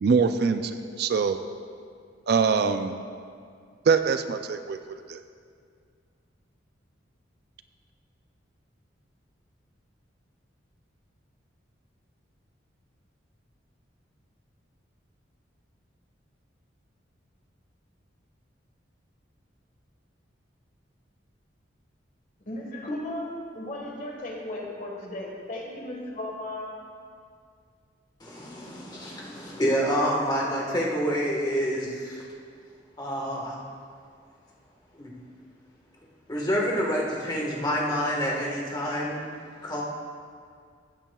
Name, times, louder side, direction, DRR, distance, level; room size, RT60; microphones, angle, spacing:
voice 1, 0.0-1.4 2.3-3.0 3.9-4.8 5.1-5.2, right 5 dB, 55° right, 9 dB, 0.4 m, -23 dB
voice 2, 22.5-26.8, left 1 dB, 45° left, -1 dB, 1.5 m, -35 dB
voice 3, 28.2-32.2 33.0-33.5 35.0-35.1 36.3-39.2 39.6-39.8, equal, 20° left, -3 dB, 1.4 m, -27 dB
15.0 x 8.7 x 2.3 m, 2.2 s
head